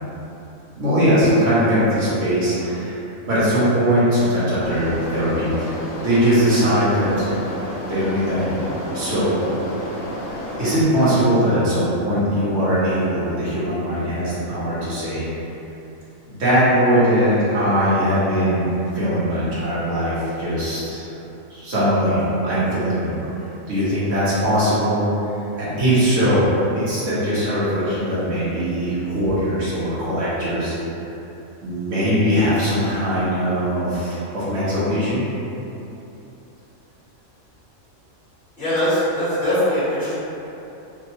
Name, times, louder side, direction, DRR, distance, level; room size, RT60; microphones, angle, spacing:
voice 1, 0.7-3.0 3.3-5.7 6.0-7.3 7.9-9.5 10.3-15.3 16.3-18.7 18.9-21.1 21.5-23.1 23.7-25.0 25.5-26.4 26.7-30.7 31.6-35.2, equal, 65° right, -12 dB, 1.4 m, -20 dB
sound 1, 4.6-10.8, left 1 dB, 75° left, 0.5 m, -31 dB
voice 2, 38.6-40.1, equal, 40° left, -12 dB, 1.5 m, -21 dB
3.5 x 2.2 x 2.9 m, 3.0 s
omnidirectional pair, 1.4 m